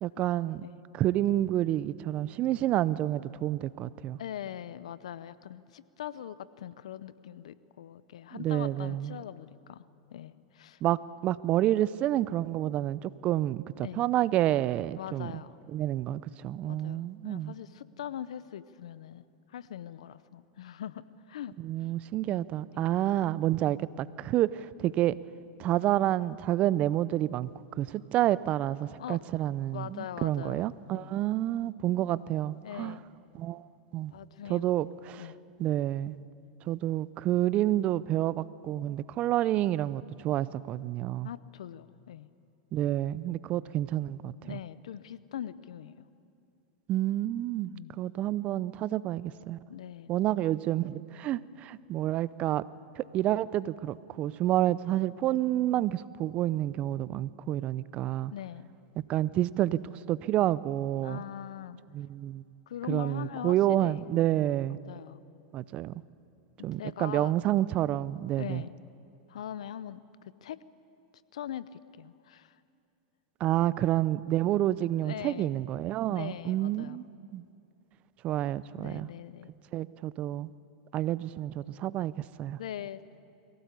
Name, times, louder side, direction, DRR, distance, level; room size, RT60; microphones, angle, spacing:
voice 1, 0.0-0.6 0.9-4.2 8.3-9.1 10.8-15.3 15.7-17.5 21.6-25.2 25.6-27.5 27.8-33.0 33.3-33.7 33.9-34.1 34.5-35.3 35.6-36.1 36.7-41.3 42.7-44.6 46.9-47.7 48.0-49.6 50.1-52.6 53.0-58.3 59.1-61.2 61.9-62.4 62.9-64.8 65.5-65.9 66.6-68.6 73.4-77.1 77.3-77.4 78.2-79.1 79.7-80.5 80.9-82.1 82.4-82.6, right 13 dB, 40° right, 19 dB, 0.6 m, -29 dB
voice 2, 4.2-10.8 13.8-14.1 15.0-15.6 16.7-21.5 21.8-21.9 22.3-22.9 29.0-29.2 29.7-30.6 30.9-31.2 32.6-33.0 34.1-34.8 35.2-35.4 41.2-42.3 44.4-46.1 47.7-48.0 49.7-50.1 58.3-58.7 61.0-61.8 62.7-64.0 64.9-65.2 66.8-67.4 68.4-68.7 69.3-70.6 71.3-72.6 75.0-75.5 76.1-77.0 78.7-79.5 82.6-83.0, left 10 dB, 80° left, 16 dB, 0.7 m, -42 dB
23.0 x 17.0 x 8.3 m, 2.6 s
hypercardioid pair, 110°, 3 cm